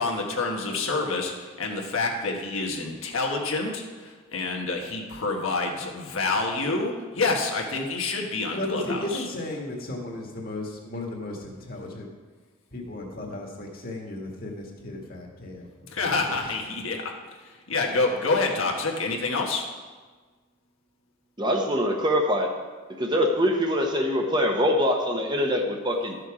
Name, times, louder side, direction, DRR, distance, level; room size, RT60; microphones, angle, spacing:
voice 1, 0.0-9.2 15.9-17.1 17.5-19.6, left 3 dB, 80° left, 1 dB, 1.5 m, -27 dB
voice 2, 8.5-12.1 12.7-15.7 16.0-16.6, left 1 dB, 45° left, 0 dB, 1.8 m, -35 dB
voice 3, 21.4-22.5 23.0-26.2, equal, 20° right, 2 dB, 0.9 m, -24 dB
12.5 x 6.7 x 4.9 m, 1.4 s
head